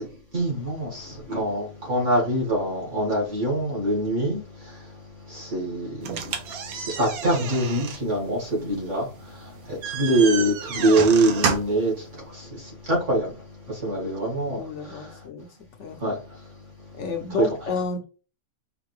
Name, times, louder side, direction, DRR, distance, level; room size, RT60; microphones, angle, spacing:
voice 1, 0.3-5.0 5.3-6.4 6.7-13.3 13.6-15.2 16.0-16.2, right 1 dB, 60° right, 2.2 m, -25 dB
sound 1, 6.0-11.9, right 7 dB, 90° right, 1.2 m, -31 dB
voice 2, 14.5-15.5 15.8-16.0 16.9-18.0, left 4 dB, 65° left, 1.0 m, -31 dB
5.0 x 2.6 x 3.1 m
omnidirectional pair, 1.5 m